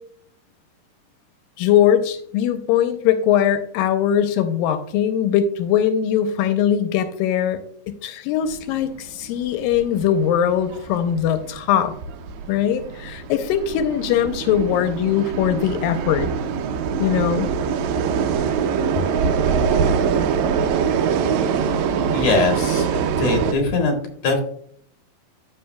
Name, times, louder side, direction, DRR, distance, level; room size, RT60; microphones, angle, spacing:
voice 1, 1.6-7.6 7.9-11.9 12.5-16.3 17.0-17.5, left 9 dB, 90° left, 8 dB, 2.4 m, -20 dB
sound 1, 8.4-23.5, right 6 dB, 80° right, 1.7 m, -24 dB
voice 2, 22.1-23.9 24.2-24.4, left 3 dB, 55° left, 2 dB, 2.7 m, -21 dB
14.0 x 5.1 x 2.2 m, 0.62 s
omnidirectional pair, 4.0 m